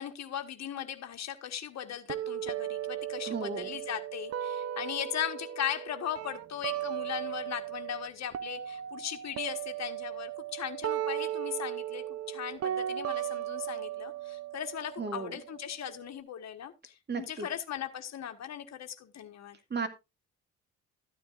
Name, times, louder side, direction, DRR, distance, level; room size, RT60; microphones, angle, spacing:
voice 1, 0.0-19.6, left 10 dB, 60° left, 1.4 m, -38 dB
sound 1, 2.1-8.1 8.3-16.1, right 11 dB, 55° right, 0.7 m, -37 dB
voice 2, 3.3-3.7 15.0-15.3 17.1-17.5 19.7-19.9, right 4 dB, 35° right, 2.3 m, -34 dB
14.0 x 9.5 x 2.5 m
cardioid pair, 90°, 30 cm